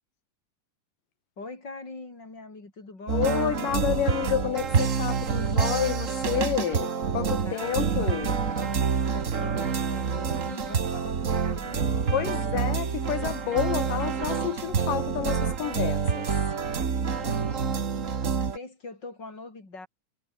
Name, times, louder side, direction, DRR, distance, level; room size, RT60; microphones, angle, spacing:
voice 1, 1.4-3.3 7.4-12.4 17.2-18.2 18.5-19.9, left 3 dB, 30° left, 6.9 m, -43 dB
voice 2, 3.1-8.4 12.1-16.3, left 10 dB, 85° left, 3.5 m, -29 dB
sound 1, 3.1-18.6, right 6 dB, 45° right, 1.0 m, -27 dB
omnidirectional pair, 3.8 m